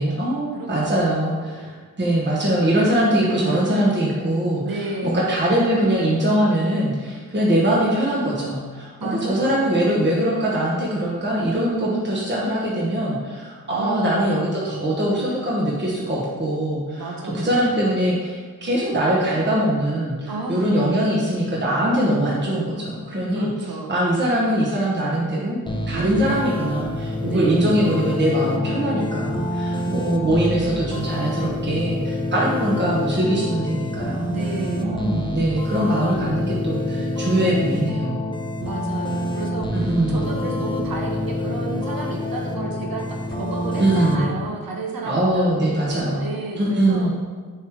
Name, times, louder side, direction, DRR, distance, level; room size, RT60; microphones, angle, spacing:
voice 1, 0.0-4.6 5.0-17.1 17.3-23.5 23.9-25.6 25.9-34.3 34.8-38.3 39.7-40.3 43.8-44.2 45.0-46.2 46.6-47.1, right 1 dB, 30° right, -5 dB, 1.3 m, -22 dB
voice 2, 0.5-1.0 1.3-1.7 4.6-5.3 9.0-9.6 13.7-14.2 17.0-17.7 20.3-20.7 23.3-24.0 25.9-26.4 27.2-27.8 29.5-29.9 34.3-35.1 38.6-47.1, right 3 dB, 60° right, 0 dB, 0.9 m, -32 dB
sound 1, 25.7-44.3, left 1 dB, 10° left, 0.7 m, -27 dB
6.4 x 3.3 x 5.0 m, 1.5 s
cardioid pair, 65°, 39 cm